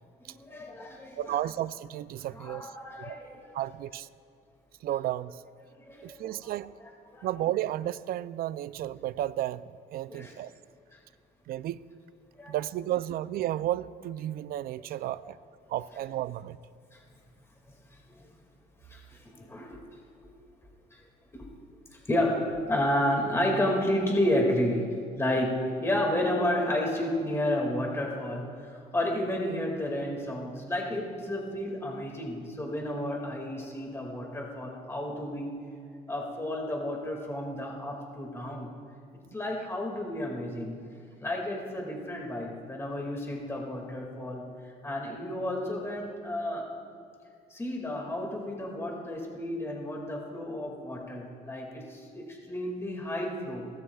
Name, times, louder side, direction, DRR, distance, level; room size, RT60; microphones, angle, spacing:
voice 1, 0.2-1.4 2.3-3.4 5.8-6.5 7.1-7.3 10.1-10.3 10.9-11.0 12.4-12.6 15.2-15.3 16.9-17.0 18.1-18.2 18.9-19.8 20.9-21.0 21.3-21.5 22.1-24.9 25.2-35.5 36.1-38.7 39.3-40.8 41.2-44.5 44.8-46.7 47.5-53.7, left 1 dB, 15° left, 2.2 m, -31 dB
voice 2, 1.2-3.2 3.5-4.1 4.8-5.4 6.0-6.7 7.2-10.5 11.5-11.9 12.5-15.4 15.7-16.6, right 13 dB, 60° right, 0.4 m, -33 dB
23.0 x 18.0 x 2.4 m
cardioid pair, 110°, 17 cm